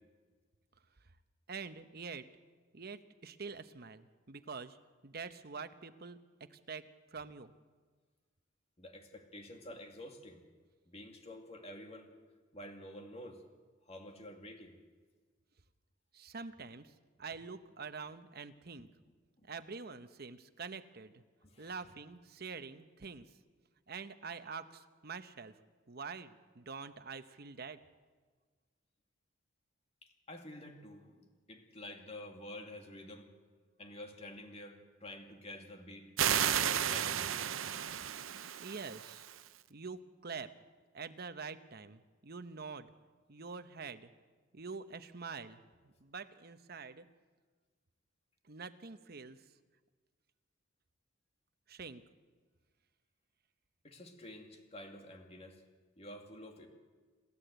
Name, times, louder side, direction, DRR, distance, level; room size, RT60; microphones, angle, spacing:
voice 1, 1.5-2.3 2.7-4.8 5.0-7.5 16.1-18.9 19.4-21.2 21.6-23.3 23.9-25.6 25.9-27.8 38.6-39.2 39.7-40.5 40.9-42.9 43.3-44.1 44.5-47.1 48.4-49.5 51.7-52.0, right 5 dB, 50° right, 10 dB, 0.9 m, -46 dB
voice 2, 8.8-10.4 10.9-12.1 12.5-13.4 13.9-14.8 19.4-19.5 21.4-21.8 30.0-33.3 33.8-36.1 36.7-37.3 53.8-55.6 56.0-56.7, left 1 dB, 30° left, 4 dB, 2.4 m, -49 dB
sound 1, 36.2-39.5, right 9 dB, 80° right, 0.7 m, -33 dB
27.5 x 13.5 x 8.0 m, 1.4 s
head